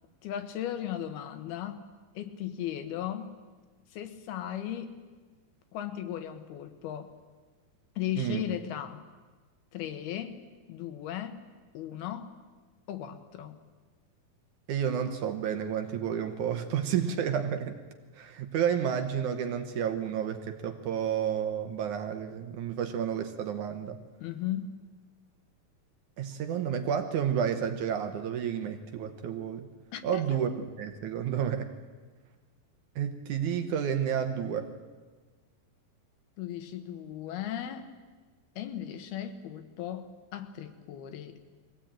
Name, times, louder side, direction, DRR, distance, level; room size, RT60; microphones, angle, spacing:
voice 1, 0.2-1.8 2.2-3.3 3.9-5.0 5.7-7.1 8.0-9.0 9.7-10.4 10.7-11.4 11.7-12.3 12.9-13.6 24.2-24.8 29.9-30.4 36.4-37.9 38.6-41.4, left 11 dB, 90° left, 8 dB, 3.2 m, -36 dB
voice 2, 14.7-17.8 18.1-24.0 26.2-29.7 30.0-30.5 30.8-31.7 33.0-34.7, right 8 dB, 65° right, 7 dB, 2.1 m, -31 dB
22.5 x 16.5 x 8.9 m, 1.4 s
omnidirectional pair, 4.3 m